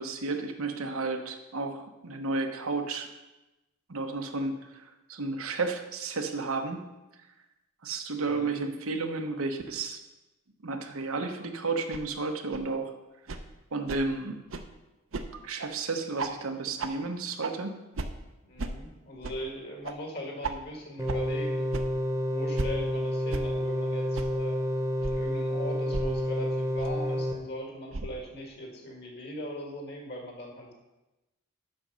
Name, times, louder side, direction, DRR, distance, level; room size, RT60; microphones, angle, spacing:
voice 1, 0.0-3.1 3.9-4.8 5.1-6.8 7.8-10.0 10.6-12.9 13.7-14.4 15.4-17.8, right 3 dB, 80° right, 5 dB, 1.0 m, -32 dB
voice 2, 8.2-8.7 18.4-21.7 22.3-24.6 25.0-30.7, left 1 dB, 50° left, 0 dB, 2.0 m, -40 dB
sound 1, 11.9-12.0 12.5-12.6 13.3-13.4 13.9-14.0 14.5-14.6 15.1-15.2 15.6-15.7 16.2-16.3 16.8-16.9 17.4-17.5 17.9-18.1 18.6-18.7 19.2-19.4 19.8-19.9 20.4-20.5 21.1-21.2 21.7-21.8 22.6-22.7 23.3-23.4 24.1-24.3 25.0-25.1 25.9-26.1 26.8-26.9 27.9-28.1, right 3 dB, 65° right, 0.7 m, -33 dB
sound 2, 21.0-27.3, equal, 15° right, 0.9 m, -29 dB
7.7 x 6.4 x 5.7 m, 1.0 s
head